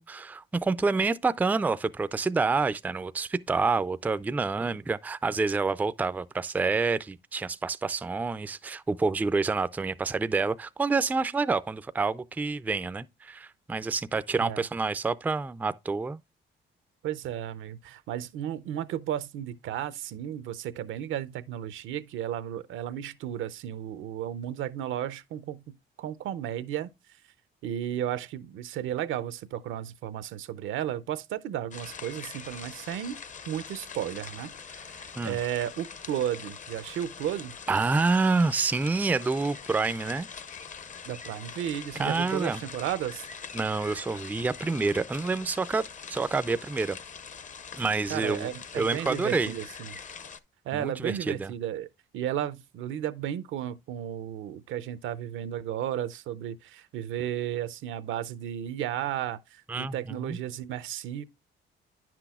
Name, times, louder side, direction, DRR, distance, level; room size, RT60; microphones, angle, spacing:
voice 1, 0.0-16.2 35.2-35.4 37.7-40.3 42.0-42.6 43.5-47.0 47.8-48.5 48.8-49.5 50.7-51.5 59.7-60.4, right 4 dB, 10° right, 0.3 m, -28 dB
voice 2, 17.0-26.9 27.6-33.2 33.5-37.6 41.1-43.3 48.1-50.0 50.6-51.9 52.1-61.2, right 11 dB, 80° right, 0.6 m, -34 dB
sound 1, 31.7-50.4, left 6 dB, 40° left, 0.6 m, -43 dB
9.7 x 6.0 x 2.3 m
cardioid pair, 90°, 20 cm